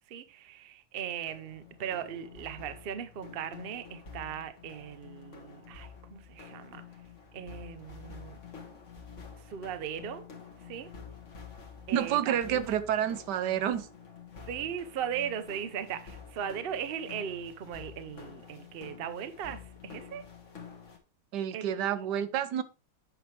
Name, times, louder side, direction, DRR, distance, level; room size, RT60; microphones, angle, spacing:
voice 1, 0.1-6.8 7.3-8.4 9.4-10.3 10.6-10.9 11.9-12.7 14.4-20.2 21.5-22.1, right 8 dB, 50° right, 0.7 m, -38 dB
sound 1, 1.3-21.0, left 6 dB, 45° left, 1.7 m, -49 dB
voice 2, 11.9-13.9 21.3-22.6, right 10 dB, 80° right, 1.3 m, -29 dB
9.1 x 5.9 x 3.2 m
omnidirectional pair, 1.8 m